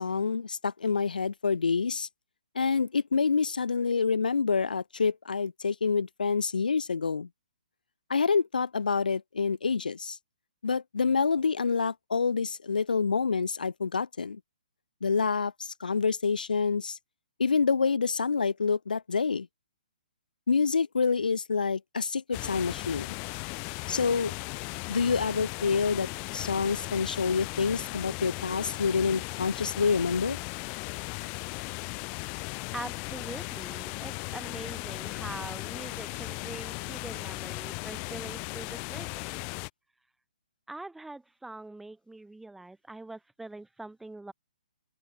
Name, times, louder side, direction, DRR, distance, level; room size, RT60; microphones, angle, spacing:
voice 1, 0.0-2.1 2.5-7.3 8.1-10.2 10.6-14.4 15.0-17.0 17.4-19.5 20.5-23.2 23.9-24.3 24.9-30.4, left 5 dB, 80° left, 0.9 m, -27 dB
sound 1, 22.3-39.7, left 35 dB, 30° left, 1.1 m, -37 dB
voice 2, 32.7-39.4 40.7-44.3, right 2 dB, 5° right, 1.3 m, -43 dB
open air
hypercardioid pair, 140°, 5 cm